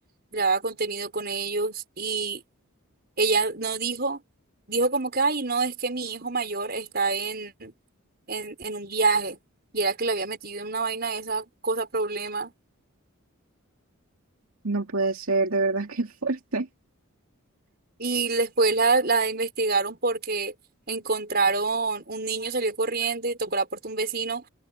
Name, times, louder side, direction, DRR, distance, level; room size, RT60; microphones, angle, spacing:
voice 1, 0.3-2.4 3.2-4.2 4.7-7.7 8.3-9.4 9.7-12.5 18.0-20.5 20.9-24.4, right 3 dB, 45° right, 5.7 m, -26 dB
voice 2, 14.6-16.7, right 3 dB, 80° right, 2.4 m, -26 dB
head